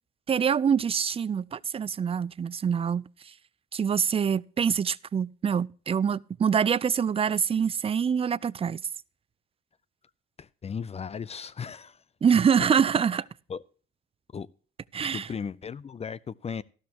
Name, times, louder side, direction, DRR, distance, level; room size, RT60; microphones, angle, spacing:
voice 1, 0.3-3.1 3.7-8.8 12.2-13.2 14.9-15.3, right 7 dB, 30° right, 0.4 m, -25 dB
voice 2, 10.4-12.0 13.5-13.6 14.3-14.5 15.0-16.6, left 6 dB, 30° left, 0.5 m, -36 dB
13.0 x 12.5 x 2.9 m
cardioid pair, 90°, 20 cm